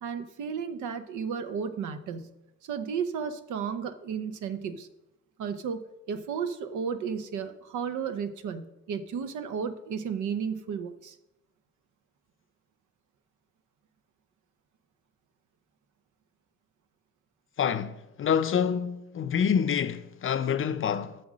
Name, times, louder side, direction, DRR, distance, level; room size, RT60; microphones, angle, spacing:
voice 1, 0.0-2.3 2.6-4.9 5.4-11.2, right 6 dB, 80° right, 0.8 m, -33 dB
voice 2, 17.6-21.2, left 7 dB, 45° left, 0.6 m, -27 dB
7.7 x 6.4 x 6.3 m
cardioid pair, 90°, 30 cm